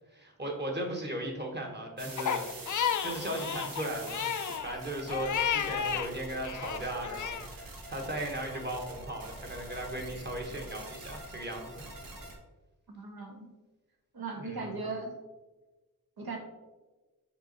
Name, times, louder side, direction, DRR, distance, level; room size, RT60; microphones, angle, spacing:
voice 1, 0.1-2.4 2.8-4.4 4.6-11.9 14.4-14.7, right 1 dB, 30° right, 1 dB, 1.2 m, -37 dB
sound 1, 2.0-12.4, right 2 dB, 65° right, 1.2 m, -45 dB
Crying sobbing, 2.2-6.1 6.4-7.5, left 8 dB, 55° left, 0.4 m, -32 dB
voice 2, 12.9-13.5 14.1-15.1 16.2-16.4, right 3 dB, 85° right, 2 dB, 1.3 m, -38 dB
6.0 x 4.3 x 4.0 m, 1.2 s
wide cardioid pair, 115°, 36 cm